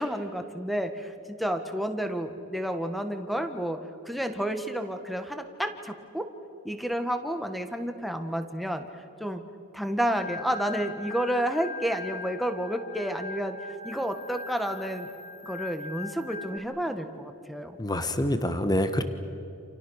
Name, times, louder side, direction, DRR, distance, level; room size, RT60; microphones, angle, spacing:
voice 1, 0.0-3.8 4.0-6.3 6.6-8.8 9.2-9.4 9.7-13.6 13.8-15.1 15.4-17.8, equal, ahead, 7 dB, 1.6 m, -30 dB
Organ, 10.2-16.6, left 3 dB, 40° left, 2.6 m, -41 dB
voice 2, 17.8-19.0, left 1 dB, 20° left, 9 dB, 1.3 m, -26 dB
29.0 x 28.5 x 6.5 m, 2.6 s
head